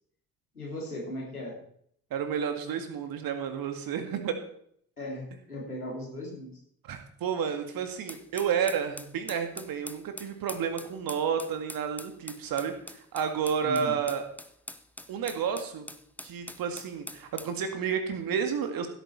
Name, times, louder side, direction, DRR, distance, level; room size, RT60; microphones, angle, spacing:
voice 1, 0.5-1.6 5.0-6.6 13.6-14.0, left 1 dB, 90° left, -3 dB, 3.2 m, -37 dB
voice 2, 2.1-4.4 6.8-14.3 15.1-15.9 16.2-18.9, right 7 dB, 50° right, 7 dB, 2.1 m, -31 dB
sound 1, 8.1-17.6, left 1 dB, 5° left, 0.9 m, -44 dB
16.0 x 8.7 x 4.5 m, 0.66 s
figure-of-eight pair, 45°, 43 cm